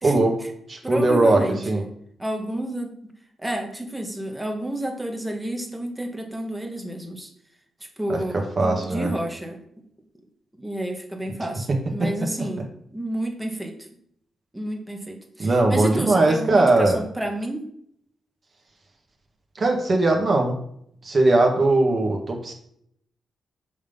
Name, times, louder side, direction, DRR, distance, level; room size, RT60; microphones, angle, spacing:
voice 1, 0.0-0.4 0.7-1.8 8.1-8.2 8.6-9.1 15.4-17.0 19.6-20.6 21.0-22.5, right 2 dB, 45° right, 1 dB, 1.8 m, -19 dB
voice 2, 0.8-1.9 2.2-2.9 3.4-7.3 8.0-9.6 10.6-13.7 14.5-17.6, right 1 dB, 10° right, 3 dB, 1.4 m, -30 dB
6.3 x 3.7 x 5.4 m, 0.69 s
cardioid pair, 65°, 0 cm